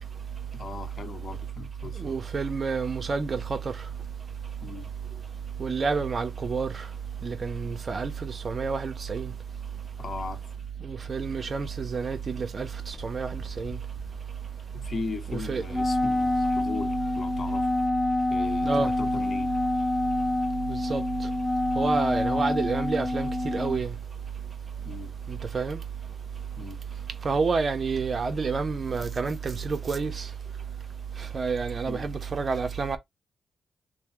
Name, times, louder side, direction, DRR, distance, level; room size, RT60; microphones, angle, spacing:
voice 1, 0.5-2.2 4.6-4.9 10.0-10.4 14.7-17.7 18.3-19.5 22.3-22.4 24.8-25.1 26.6-26.8 31.9-32.1, left 4 dB, 55° left, 1.0 m, -38 dB
voice 2, 2.0-3.6 5.6-6.9 7.2-9.3 10.8-13.8 15.3-15.6 18.6-18.9 20.7-21.0 21.8-23.9 25.3-25.8 27.2-30.3 31.3-33.0, right 4 dB, 50° right, 1.0 m, -29 dB
Wind instrument woodwind instrument, 15.7-23.8, left 2 dB, 5° left, 0.8 m, -27 dB
3.3 x 2.3 x 4.3 m
supercardioid pair, 50°, 0 cm